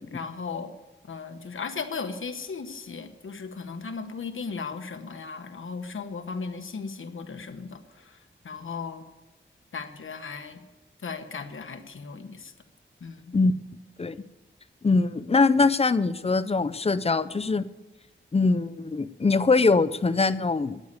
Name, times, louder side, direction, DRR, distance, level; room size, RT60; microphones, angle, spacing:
voice 1, 0.1-0.7 1.1-8.2 8.4-9.0 9.7-10.6 11.0-12.5 13.0-13.4, left 5 dB, 75° left, 8 dB, 1.0 m, -36 dB
voice 2, 14.8-17.7 18.3-20.8, left 3 dB, 30° left, 15 dB, 0.5 m, -22 dB
9.6 x 8.1 x 8.1 m, 1.1 s
wide cardioid pair, 95°, 21 cm